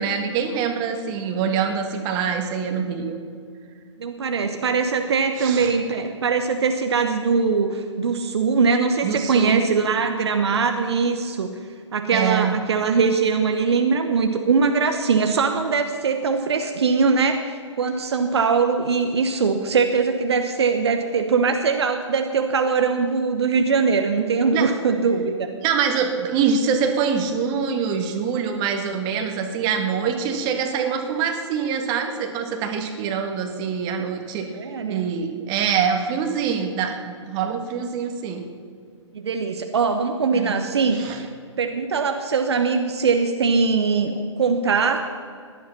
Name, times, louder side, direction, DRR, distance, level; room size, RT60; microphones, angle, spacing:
voice 1, 0.0-3.2 5.4-5.7 9.0-9.6 12.1-12.5 24.5-24.7 25.6-34.5 34.9-38.4 40.3-40.5 40.9-41.2, right 6 dB, 25° right, 4 dB, 1.6 m, -24 dB
voice 2, 4.0-11.5 11.9-25.5 34.5-35.1 39.1-41.0 41.6-45.1, right 5 dB, 60° right, 6 dB, 1.0 m, -21 dB
17.0 x 11.0 x 5.8 m, 2.2 s
figure-of-eight pair, 120°, 16 cm